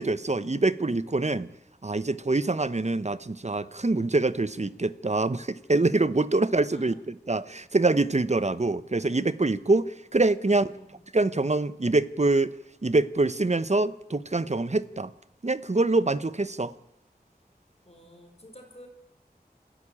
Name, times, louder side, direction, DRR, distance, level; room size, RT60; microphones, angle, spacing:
voice 1, 0.0-1.5 1.8-10.7 11.1-12.5 12.8-15.1 15.4-16.7, right 2 dB, 45° right, 15 dB, 0.9 m, -25 dB
voice 2, 2.4-3.0 6.5-7.0 10.5-10.9 17.8-18.9, equal, 40° left, 3 dB, 4.9 m, -51 dB
27.5 x 15.0 x 8.7 m, 0.87 s
wide cardioid pair, 50°, 17 cm